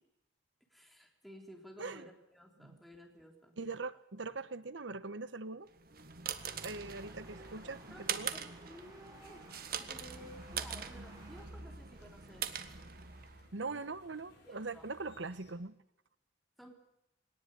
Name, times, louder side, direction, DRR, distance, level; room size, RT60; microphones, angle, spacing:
voice 1, 0.7-3.6 7.6-12.5 13.7-13.8 14.4-14.9 16.6-16.7, equal, ahead, 1 dB, 3.6 m, -54 dB
voice 2, 3.6-5.7 6.6-8.3 13.5-15.8, right 3 dB, 85° right, 14 dB, 1.2 m, -42 dB
sound 1, 5.8-13.5, right 7 dB, 55° right, 1.6 m, -43 dB
sound 2, 6.2-11.4, right 2 dB, 20° right, 5.7 m, -58 dB
sound 3, 9.1-15.6, left 1 dB, 60° left, 7.9 m, -64 dB
22.5 x 18.5 x 9.9 m, 0.83 s
head